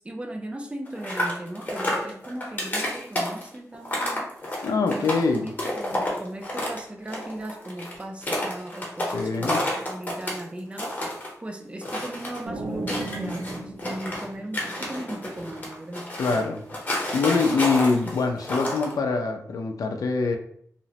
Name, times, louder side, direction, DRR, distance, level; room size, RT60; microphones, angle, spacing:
voice 1, 0.0-4.3 4.9-5.1 5.4-10.9 11.4-16.1, right 1 dB, 20° right, 4 dB, 0.3 m, -37 dB
sound 1, 0.9-6.8 7.1-10.4 10.7-11.3 11.8-12.4 12.9-14.2 14.5-18.9, left 1 dB, 30° left, 0.7 m, -30 dB
voice 2, 4.6-5.5 9.1-9.6 16.2-16.6 17.1-20.4, left 4 dB, 90° left, 4 dB, 0.3 m, -24 dB
sound 2, 12.5-15.2, right 2 dB, 75° right, 0.5 m, -35 dB
2.8 x 2.0 x 2.8 m, 0.65 s
wide cardioid pair, 140°, 6 cm